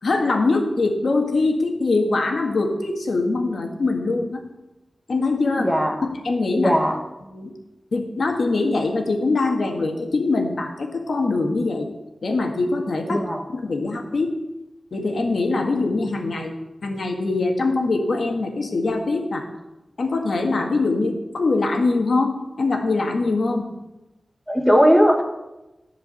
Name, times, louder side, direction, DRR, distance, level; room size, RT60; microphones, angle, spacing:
voice 1, 0.0-4.4 5.1-5.7 6.2-6.7 7.3-7.5 7.9-11.9 12.2-13.2 13.5-14.3 14.9-16.5 16.8-19.4 20.0-23.6, left 3 dB, 70° left, 3 dB, 1.7 m, -23 dB
voice 2, 5.6-6.0 6.6-7.0 13.1-13.4 24.5-25.2, equal, ahead, 3 dB, 1.4 m, -18 dB
14.5 x 4.9 x 8.2 m, 1.0 s
wide cardioid pair, 110°, 0 cm